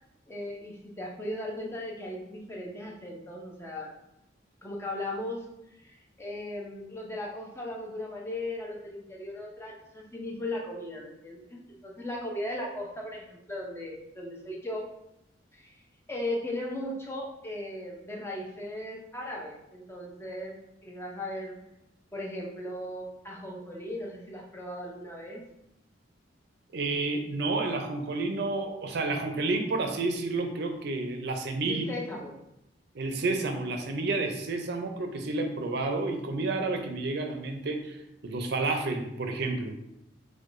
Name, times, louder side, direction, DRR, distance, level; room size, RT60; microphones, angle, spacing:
voice 1, 0.3-3.9 4.6-5.5 5.8-14.9 15.5-15.7 16.1-20.6 20.8-21.6 22.1-25.4 31.7-32.3, left 1 dB, 15° left, -1 dB, 0.6 m, -37 dB
voice 2, 26.7-31.9 32.9-38.0 38.2-39.7, right 3 dB, 65° right, 5 dB, 0.5 m, -30 dB
4.5 x 2.2 x 2.5 m, 0.83 s
head